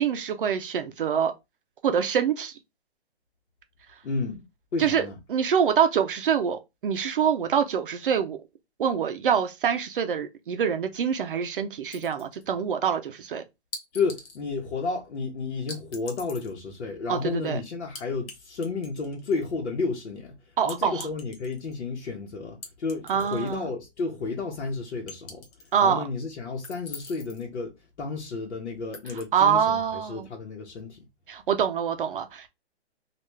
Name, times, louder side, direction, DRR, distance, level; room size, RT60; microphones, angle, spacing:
voice 1, 0.0-1.3 1.8-2.5 4.8-8.4 8.8-13.4 17.1-17.6 20.6-21.1 23.1-23.7 25.7-26.0 29.3-30.3 31.3-32.5, right 7 dB, 55° right, 0.5 m, -25 dB
voice 2, 4.0-4.5 4.7-5.2 13.9-31.1, left 4 dB, 90° left, 0.9 m, -32 dB
sound 1, 11.9-12.5 13.7-14.4 15.7-16.5 17.9-18.3 18.6-19.5 20.7-21.8 22.6-23.6 24.0-24.1 25.1-25.8 26.6-27.5 28.9-29.2, left 3 dB, 60° left, 1.3 m, -43 dB
3.3 x 2.4 x 3.1 m
hypercardioid pair, 160°, 33 cm